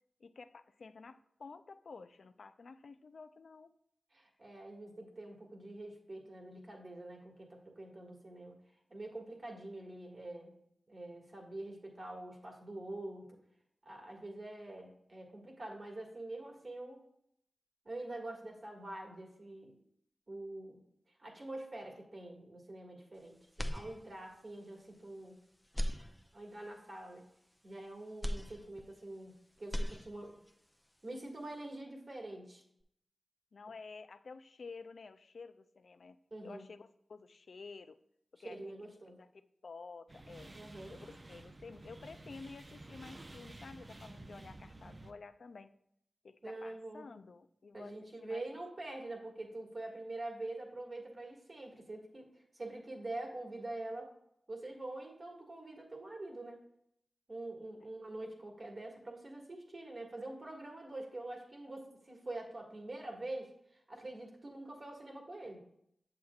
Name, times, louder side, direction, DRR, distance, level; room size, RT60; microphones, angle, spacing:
voice 1, 0.2-3.7 33.5-36.2 36.4-38.0 38.4-38.8 39.2-40.6 40.9-45.7 46.2-47.9 48.2-48.4, left 4 dB, 75° left, 11 dB, 0.3 m, -51 dB
voice 2, 4.1-8.6 8.9-10.6 10.9-13.4 13.8-17.0 17.8-19.7 20.3-20.8 21.2-25.4 26.3-27.2 27.6-30.4 31.0-32.6 36.3-36.7 38.4-39.2 40.5-41.0 46.4-47.0 47.7-54.1 54.5-56.6 57.3-65.6, right 2 dB, 55° right, 0 dB, 1.7 m, -45 dB
sound 1, 23.5-24.5 24.9-25.0 25.6-26.7 28.2-29.3 29.6-30.5, equal, 10° left, 0.5 m, -39 dB
sound 2, 40.1-45.1, right 2 dB, 40° right, 0.5 m, -52 dB
7.6 x 7.0 x 2.4 m, 0.73 s
cardioid pair, 40°, 0 cm